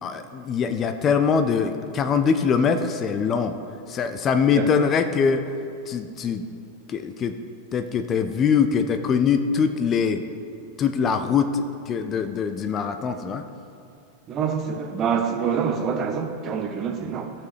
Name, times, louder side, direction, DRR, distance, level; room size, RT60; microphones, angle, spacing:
voice 1, 0.0-3.6 3.9-5.5 5.9-6.4 6.9-7.4 7.7-10.2 10.8-13.4, left 6 dB, 25° left, 0.5 m, -23 dB
voice 2, 14.3-17.3, right 6 dB, 30° right, 0.8 m, -26 dB
15.5 x 5.8 x 3.3 m
figure-of-eight pair, 90°, 0 cm